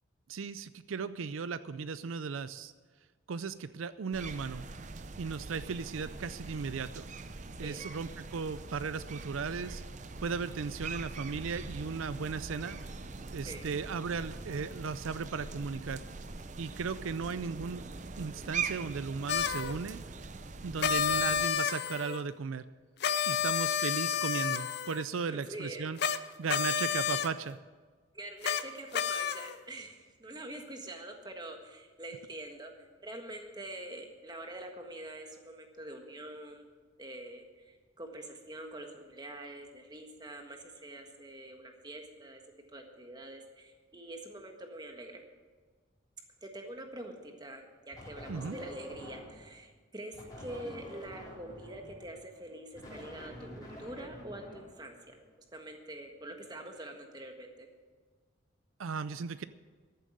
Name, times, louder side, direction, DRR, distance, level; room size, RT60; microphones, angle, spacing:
voice 1, 0.3-2.7 3.3-4.6 5.2-7.1 7.6-9.8 10.2-12.8 13.3-16.0 16.6-17.8 18.2-20.0 20.6-22.6 23.3-26.0 26.4-27.6 48.3-48.5 58.8-59.4, right 5 dB, 85° right, 14 dB, 0.5 m, -36 dB
sound 1, 4.1-21.5, right 4 dB, 35° right, 0.6 m, -42 dB
voice 2, 7.5-7.8 13.4-13.7 20.9-21.1 25.3-25.9 28.1-36.7 37.0-42.4 42.7-45.2 46.4-55.1 55.5-57.7, right 1 dB, 20° right, 3 dB, 1.5 m, -45 dB
sound 2, 19.3-19.7 20.8-22.2 23.0-25.0 26.0-26.2 26.5-27.3 28.4-28.6 28.9-29.6, left 7 dB, 55° left, 0.6 m, -30 dB
sound 3, 47.9-49.5 50.1-55.3, left 1 dB, 20° left, 3.9 m, -48 dB
13.5 x 7.6 x 7.6 m, 1.4 s
head